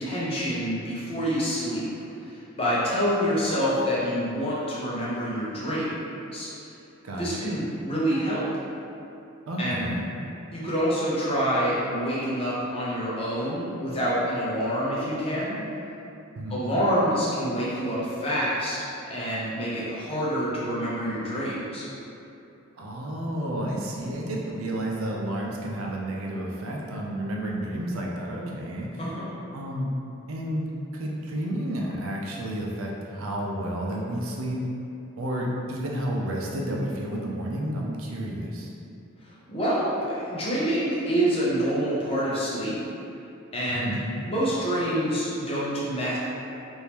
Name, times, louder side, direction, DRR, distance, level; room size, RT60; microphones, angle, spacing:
voice 1, 0.0-1.9 2.2-5.9 6.3-6.5 7.2-8.4 9.6-9.8 10.5-15.6 16.5-21.9 29.0-29.3 39.5-42.7 43.5-43.9 44.3-46.2, equal, 25° left, -8 dB, 0.7 m, -27 dB
voice 2, 7.0-7.6 9.5-10.0 16.3-16.6 22.7-29.1 29.5-29.9 30.3-34.6 35.2-38.7 43.7-44.0, right 1 dB, 80° right, -2 dB, 0.5 m, -31 dB
3.5 x 2.6 x 2.9 m, 2.7 s
head